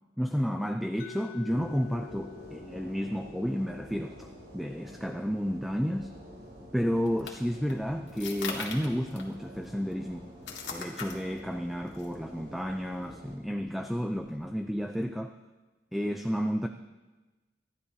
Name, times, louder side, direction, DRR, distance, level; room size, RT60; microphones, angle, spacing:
voice 1, 0.2-4.3 4.5-6.1 6.7-10.3 10.7-15.3 15.9-16.7, equal, ahead, 5 dB, 0.4 m, -31 dB
Mallet percussion, 1.0-6.8, left 7 dB, 55° left, 0.9 m, -50 dB
sound 1, 1.5-13.4, equal, 60° right, 2.9 m, -49 dB
sound 2, 6.5-15.0, left 5 dB, 90° left, 2.0 m, -44 dB
25.0 x 11.5 x 2.8 m, 1.2 s
head